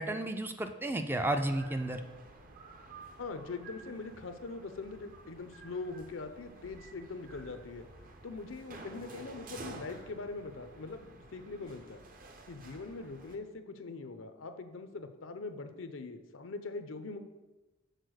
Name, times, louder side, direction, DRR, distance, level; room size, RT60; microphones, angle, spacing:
voice 1, 0.0-2.0, right 1 dB, 10° right, 7 dB, 0.4 m, -32 dB
sound 1, 1.2-13.4, right 2 dB, 45° right, 0.8 m, -51 dB
voice 2, 3.2-7.9 8.2-12.0 12.5-17.2, left 3 dB, 80° left, 8 dB, 0.7 m, -42 dB
6.6 x 4.4 x 6.3 m, 1.1 s
head